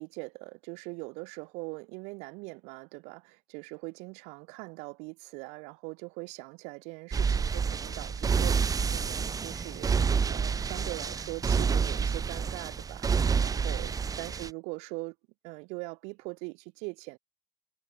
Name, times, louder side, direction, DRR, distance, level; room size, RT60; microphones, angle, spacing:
voice 1, 0.0-15.2 15.4-17.2, right 31 dB, 80° right, 2.3 m, -42 dB
sound 1, 7.1-14.5, right 6 dB, 30° right, 0.8 m, -28 dB
hypercardioid pair, 65°, 11 cm